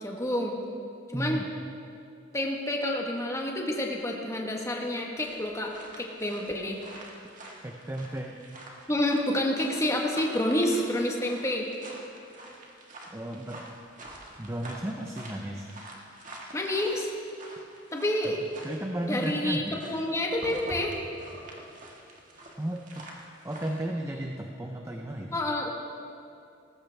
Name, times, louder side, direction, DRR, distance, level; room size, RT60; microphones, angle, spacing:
voice 1, 0.0-0.6 1.1-1.4 2.3-6.8 8.9-11.7 16.5-17.1 17.9-18.4 19.1-21.0 25.3-25.7, left 1 dB, 15° left, 0 dB, 1.4 m, -28 dB
voice 2, 1.1-1.5 7.6-8.4 13.1-13.7 14.4-15.7 18.2-18.3 18.6-19.8 22.6-23.1 23.4-25.4, right 1 dB, 15° right, 2 dB, 0.7 m, -34 dB
sound 1, 5.2-18.8 19.0-23.8, right 1 dB, 40° right, 1.9 m, -46 dB
19.0 x 15.0 x 3.5 m, 2.5 s
head